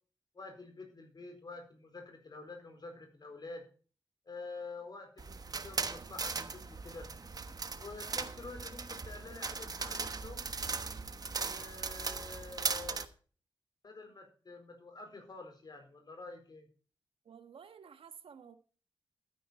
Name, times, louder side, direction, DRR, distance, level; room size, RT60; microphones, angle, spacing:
voice 1, 0.3-3.7 4.2-7.1 7.8-10.4 11.2-13.1 13.8-16.7, left 3 dB, 50° left, 4.3 m, -48 dB
sound 1, 5.2-13.1, right 4 dB, 45° right, 1.2 m, -38 dB
voice 2, 17.2-18.6, right 7 dB, 85° right, 1.3 m, -52 dB
12.5 x 10.0 x 4.2 m
wide cardioid pair, 105°, 9 cm